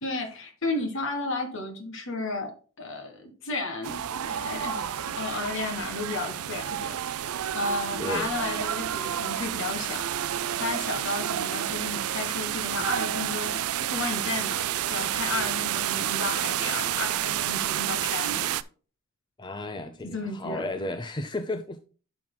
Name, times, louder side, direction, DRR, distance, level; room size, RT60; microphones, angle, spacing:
voice 1, 0.0-7.2 7.5-10.1 10.6-13.6 13.9-14.6 14.9-18.5 20.0-20.7, left 2 dB, 60° left, 1.7 m, -33 dB
sound 1, 3.8-18.6, right 11 dB, 75° right, 0.4 m, -30 dB
voice 2, 8.0-8.3 19.4-21.8, left 2 dB, 20° left, 0.5 m, -33 dB
11.0 x 6.1 x 2.2 m
head